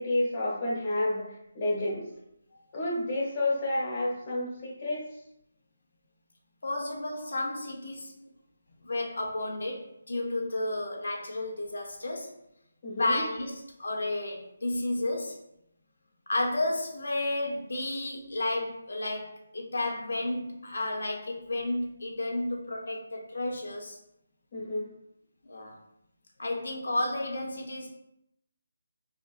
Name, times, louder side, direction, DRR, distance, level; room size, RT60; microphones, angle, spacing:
voice 1, 0.0-2.1 2.7-5.0 12.8-13.2 24.5-24.9, left 1 dB, 25° left, -4 dB, 1.1 m, -30 dB
voice 2, 6.6-8.2 8.8-12.3 13.0-15.4 16.3-24.0 25.4-25.7 26.4-27.9, left 2 dB, 75° left, 0 dB, 0.6 m, -32 dB
4.1 x 2.8 x 2.4 m, 0.80 s
hypercardioid pair, 170°, 0 cm